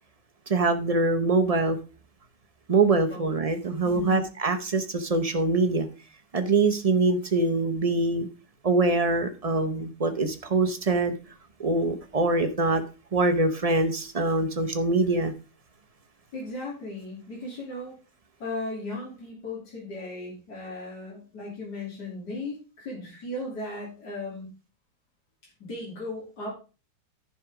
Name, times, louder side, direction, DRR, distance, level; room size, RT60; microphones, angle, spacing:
voice 1, 0.5-1.8 2.7-5.9 6.3-8.3 8.6-11.1 11.6-12.8 13.1-15.3, right 3 dB, 45° right, 7 dB, 0.5 m, -24 dB
voice 2, 3.8-4.2 16.3-18.0 18.4-24.5 25.6-26.5, left 2 dB, 65° left, -4 dB, 3.3 m, -36 dB
10.5 x 5.7 x 4.8 m, 0.33 s
omnidirectional pair, 1.9 m